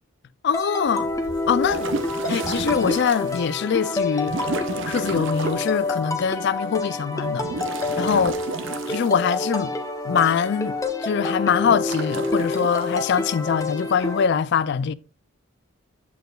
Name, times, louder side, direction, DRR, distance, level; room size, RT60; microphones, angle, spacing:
voice 1, 0.4-1.1 1.5-1.9 2.3-4.4 4.8-7.5 8.0-8.4 8.9-9.8 10.0-14.9, left 7 dB, 55° left, 0.3 m, -23 dB
sound 1, 0.5-14.3, left 2 dB, 15° left, 0.7 m, -28 dB
sound 2, 0.9-3.4 4.2-5.8 7.2-9.6 11.6-13.0, right 3 dB, 60° right, 0.7 m, -32 dB
8.2 x 6.8 x 2.3 m
head